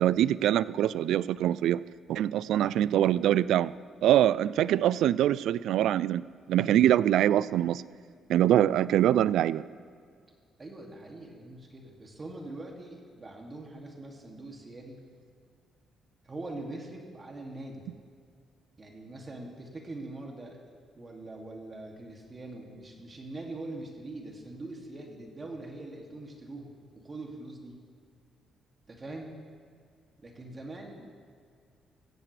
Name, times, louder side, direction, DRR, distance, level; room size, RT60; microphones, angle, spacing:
voice 1, 0.0-1.8 2.1-3.7 4.0-7.8 8.3-9.6, right 12 dB, 80° right, 19 dB, 0.3 m, -24 dB
voice 2, 10.6-15.0 16.2-17.9 18.8-20.6 20.9-27.8 28.9-29.3 30.2-31.1, right 2 dB, 30° right, 0 dB, 2.4 m, -43 dB
15.5 x 15.5 x 3.4 m, 2.2 s
cardioid pair, 90°, 0 cm